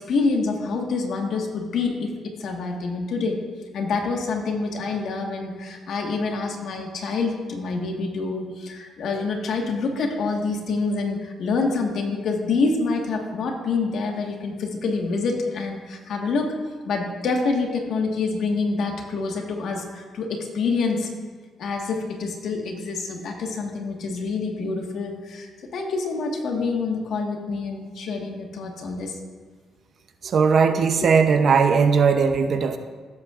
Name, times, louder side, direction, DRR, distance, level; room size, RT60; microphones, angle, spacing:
voice 1, 0.1-3.4 3.7-16.5 16.9-21.1 21.6-29.2 31.0-31.1, left 4 dB, 70° left, 2 dB, 1.6 m, -26 dB
voice 2, 30.2-32.8, right 5 dB, 55° right, 7 dB, 0.7 m, -18 dB
16.5 x 8.2 x 2.5 m, 1.5 s
cardioid pair, 90°, 0 cm